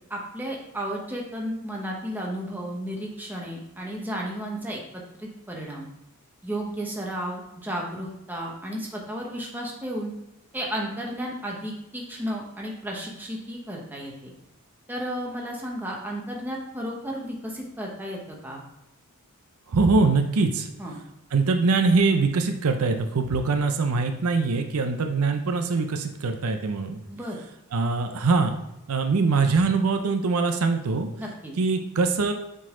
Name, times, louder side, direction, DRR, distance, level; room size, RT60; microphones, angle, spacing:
voice 1, 0.1-5.9 6.4-10.1 10.5-14.3 14.9-18.6 20.8-21.0 27.1-27.4 31.2-31.5, equal, 10° right, -2 dB, 1.0 m, -33 dB
voice 2, 19.7-20.7 21.3-27.0 27.7-28.5 28.9-31.1 31.6-32.3, right 4 dB, 75° right, 6 dB, 0.6 m, -23 dB
7.5 x 3.9 x 3.7 m, 0.86 s
head